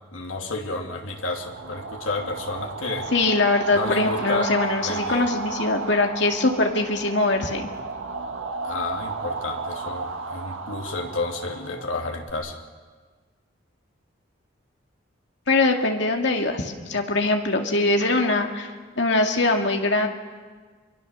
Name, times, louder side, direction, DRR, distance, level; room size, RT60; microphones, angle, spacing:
voice 1, 0.1-3.1 3.7-4.5 4.8-5.3 8.6-12.6, left 2 dB, 85° left, 2 dB, 2.7 m, -31 dB
sound 1, 1.2-12.3, right 4 dB, 85° right, 1.5 m, -33 dB
voice 2, 3.1-7.7 15.5-18.7 19.0-20.1, left 2 dB, 60° left, 3 dB, 2.2 m, -22 dB
23.5 x 23.5 x 6.9 m, 1.5 s
head